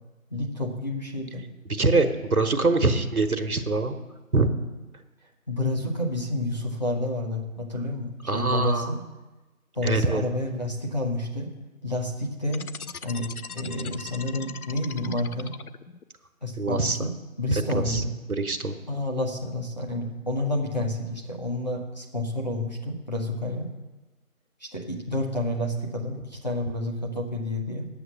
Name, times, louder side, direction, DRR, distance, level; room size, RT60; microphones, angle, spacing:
voice 1, 0.3-1.4 5.5-9.0 9.7-11.5 11.8-12.6 13.0-13.3 13.5-15.5 16.4-17.1 17.4-18.1 18.9-23.7 24.6-27.9, left 1 dB, 30° left, -1 dB, 1.2 m, -29 dB
voice 2, 1.7-4.0 4.3-4.5 8.2-8.9 9.8-10.2 16.6-17.0 17.7-18.8, right 3 dB, 85° right, 7 dB, 1.3 m, -24 dB
sound 1, 12.5-16.0, left 6 dB, 85° left, 0.7 m, -40 dB
9.4 x 8.1 x 6.7 m, 1.2 s
figure-of-eight pair, 170°, 42 cm